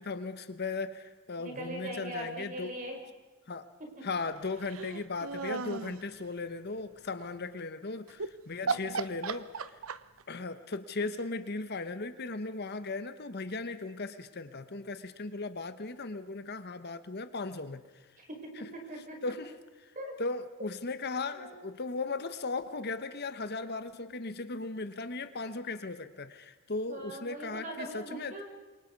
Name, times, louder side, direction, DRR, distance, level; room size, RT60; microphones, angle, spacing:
voice 1, 0.0-2.7 3.5-3.7 4.0-9.8 10.3-17.8 18.6-18.7 19.2-19.5 19.8-19.9 20.2-28.4, left 3 dB, 50° left, 11 dB, 1.1 m, -37 dB
voice 2, 1.4-3.0 3.8-3.9 8.6-9.1 18.2-19.2 20.0-20.1 21.3-21.5 26.9-28.4, right 1 dB, 35° right, 2 dB, 5.3 m, -41 dB
sound 1, 4.6-6.0 8.1-8.3 8.7-10.2, right 4 dB, 70° right, 0.9 m, -35 dB
27.5 x 23.5 x 5.4 m, 1.2 s
head